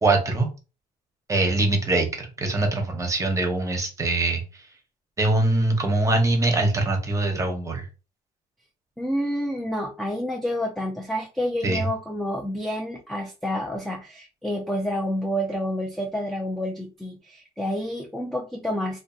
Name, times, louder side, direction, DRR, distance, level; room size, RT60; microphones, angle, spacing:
voice 1, 0.0-0.5 1.3-4.4 5.2-7.9 11.6-11.9, right 2 dB, 20° right, 3 dB, 0.8 m, -23 dB
voice 2, 9.0-19.0, equal, ahead, 1 dB, 0.4 m, -29 dB
2.6 x 2.4 x 2.3 m, 0.32 s
cardioid pair, 110°, 17 cm